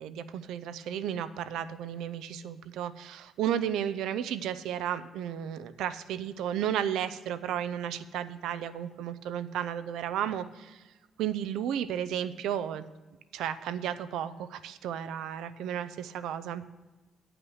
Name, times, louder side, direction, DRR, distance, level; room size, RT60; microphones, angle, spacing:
voice 1, 0.0-10.8 11.2-12.8 13.3-16.6, right 10 dB, 85° right, 12 dB, 0.5 m, -33 dB
9.7 x 5.9 x 6.3 m, 1.2 s
cardioid pair, 90°, 0 cm